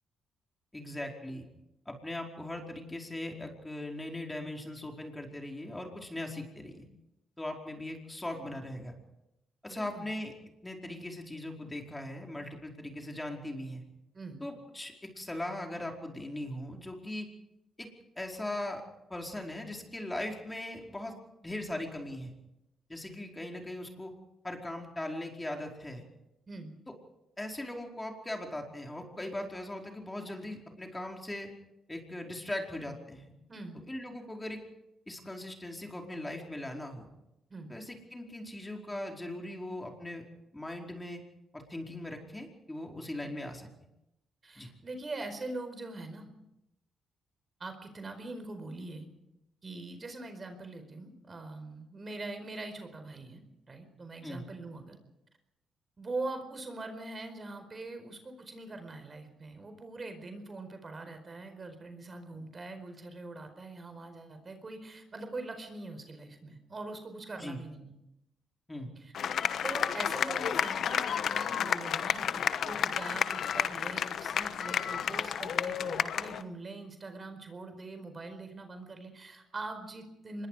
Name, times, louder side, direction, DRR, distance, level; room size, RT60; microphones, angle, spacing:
voice 1, 0.7-1.4 1.8-6.8 7.4-8.9 9.6-10.3 10.6-13.8 14.4-17.3 17.8-17.9 18.2-18.8 19.1-21.1 21.4-22.3 22.9-24.1 24.4-26.0 27.4-31.5 31.9-33.3 33.9-34.6 35.1-37.1 37.7-40.2 40.5-41.2 41.5-43.7 44.6-44.7 54.2-54.4 67.4-67.6 68.7-68.9, left 1 dB, 15° left, 2 dB, 4.8 m, -39 dB
voice 2, 9.7-10.1 14.1-14.4 26.5-26.8 33.5-33.8 37.5-37.7 44.4-46.3 47.6-49.1 49.6-55.0 56.0-67.9 69.0-69.3 69.6-80.5, right 2 dB, 40° right, 7 dB, 4.7 m, -42 dB
sound 1, 69.1-76.4, left 8 dB, 65° left, 1.1 m, -31 dB
25.0 x 21.5 x 5.0 m, 0.87 s
supercardioid pair, 55°, 0 cm